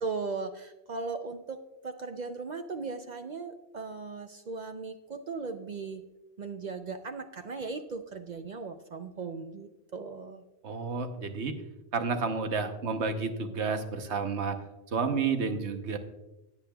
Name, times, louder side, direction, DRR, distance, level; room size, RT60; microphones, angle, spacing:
voice 1, 0.0-6.0 6.4-10.4, right 4 dB, 50° right, 7 dB, 0.6 m, -38 dB
voice 2, 10.6-11.6 11.9-14.6 14.9-16.0, right 5 dB, 90° right, 7 dB, 1.2 m, -30 dB
16.5 x 8.5 x 2.3 m, 1.0 s
omnidirectional pair, 1.1 m